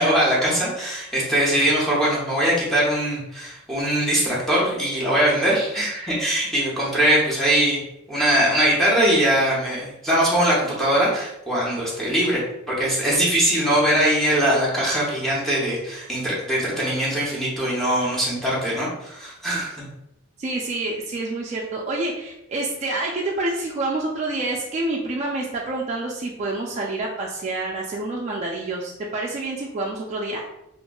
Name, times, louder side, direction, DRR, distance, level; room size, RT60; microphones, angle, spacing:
voice 1, 0.0-7.8 8.1-19.9, right 1 dB, ahead, -7 dB, 0.6 m, -21 dB
voice 2, 20.4-30.4, right 2 dB, 35° right, -2 dB, 0.3 m, -28 dB
2.9 x 2.4 x 2.2 m, 0.84 s
head